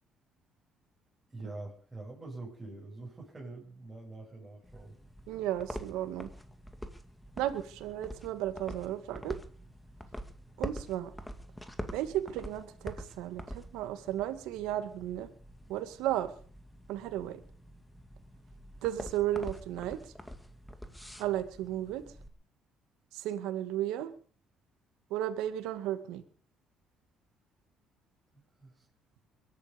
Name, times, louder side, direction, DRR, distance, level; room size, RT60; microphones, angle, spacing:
voice 1, 1.3-5.0 28.3-28.9, right 2 dB, 20° right, -5 dB, 7.7 m, -45 dB
sound 1, 4.6-22.3, equal, 5° left, 2.3 m, -46 dB
voice 2, 5.3-6.3 7.4-9.4 10.6-11.1 11.9-15.3 15.7-16.3 16.9-17.4 18.8-20.0 21.2-22.0 23.1-24.1 25.1-26.2, right 12 dB, 90° right, 10 dB, 2.2 m, -34 dB
22.5 x 11.5 x 5.4 m, 0.43 s
cardioid pair, 100°, 0 cm